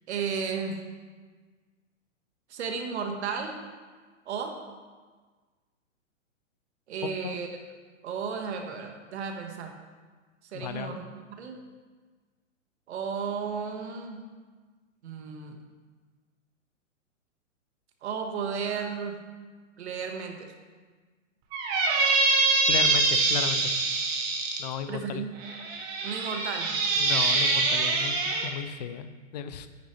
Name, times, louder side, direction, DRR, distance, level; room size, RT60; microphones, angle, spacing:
voice 1, 0.1-0.8 2.5-3.6 4.2-4.6 6.9-7.5 8.0-9.7 10.5-11.6 12.9-14.2 15.0-15.6 18.0-19.2 19.8-20.5 24.9-25.3 26.0-26.7, right 6 dB, 60° right, 4 dB, 1.6 m, -33 dB
voice 2, 10.5-11.0 22.7-23.8 24.6-25.2 27.0-29.7, left 8 dB, 35° left, 11 dB, 0.5 m, -35 dB
Squeak, 21.5-24.6 25.4-28.5, right 3 dB, 30° right, 1.5 m, -24 dB
10.5 x 9.6 x 3.3 m, 1.4 s
hypercardioid pair, 155°, 39 cm